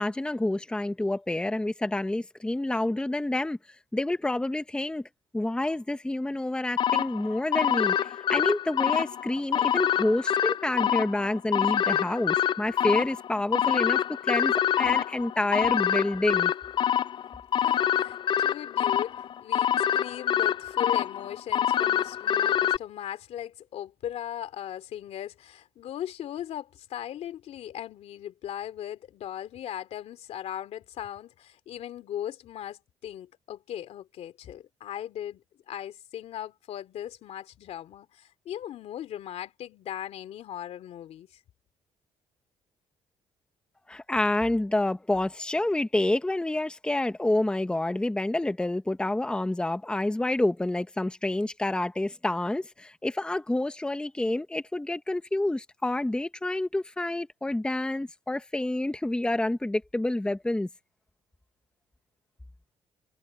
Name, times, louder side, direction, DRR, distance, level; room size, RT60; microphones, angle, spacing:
voice 1, 0.0-3.6 3.9-5.0 5.3-16.5 43.9-60.7, left 1 dB, 10° left, 1.1 m, -28 dB
sound 1, 6.8-22.8, left 10 dB, 45° left, 0.4 m, -26 dB
voice 2, 17.5-41.4, left 11 dB, 75° left, 2.9 m, -38 dB
cardioid pair, 115°, 11 cm